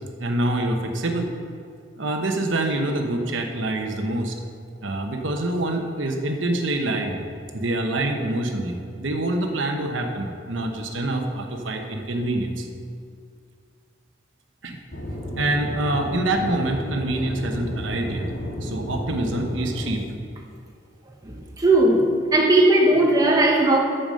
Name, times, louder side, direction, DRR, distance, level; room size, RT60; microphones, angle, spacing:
voice 1, 0.2-1.3 2.0-4.4 4.8-7.2 7.5-12.7 14.6-14.8 15.4-18.3 18.6-20.0, right 1 dB, 90° right, 3 dB, 1.1 m, -26 dB
Aircraft / Engine, 14.9-19.9, equal, 65° left, 2.2 m, -32 dB
voice 2, 21.2-23.8, right 2 dB, 20° right, -1 dB, 1.1 m, -18 dB
9.1 x 6.9 x 6.6 m, 2.3 s
head